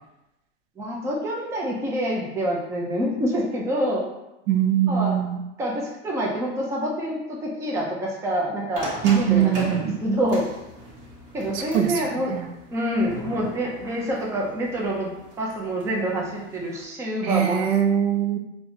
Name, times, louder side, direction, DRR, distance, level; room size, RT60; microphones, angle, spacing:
voice 1, 0.8-4.0 4.9-5.1 5.6-10.5 11.3-12.3 12.7-15.1 15.4-17.7, equal, 10° right, -2 dB, 0.4 m, -26 dB
voice 2, 4.5-5.4 9.0-9.9 11.5-12.0 12.3-12.5 17.2-18.4, right 9 dB, 55° right, 4 dB, 0.5 m, -22 dB
sound 1, 8.7-16.8, right 1 dB, 40° right, 1.1 m, -40 dB
4.0 x 2.2 x 2.7 m, 0.91 s
hypercardioid pair, 110°, 37 cm